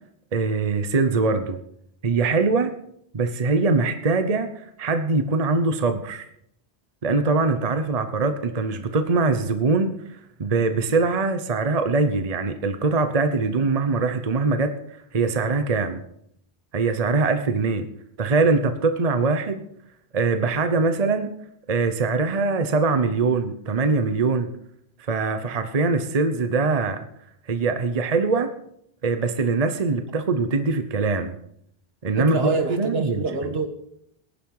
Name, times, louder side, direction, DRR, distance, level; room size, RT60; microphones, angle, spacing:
voice 1, 0.3-1.6 2.0-2.8 3.1-6.2 7.0-14.7 15.1-16.0 16.7-17.9 18.2-19.6 20.1-21.3 21.7-24.5 25.0-27.1 27.5-28.5 29.0-31.4 32.0-33.5, right 3 dB, 40° right, 1.0 m, -22 dB
voice 2, 32.2-33.7, right 3 dB, 65° right, 1.8 m, -26 dB
18.0 x 11.0 x 4.8 m
omnidirectional pair, 1.1 m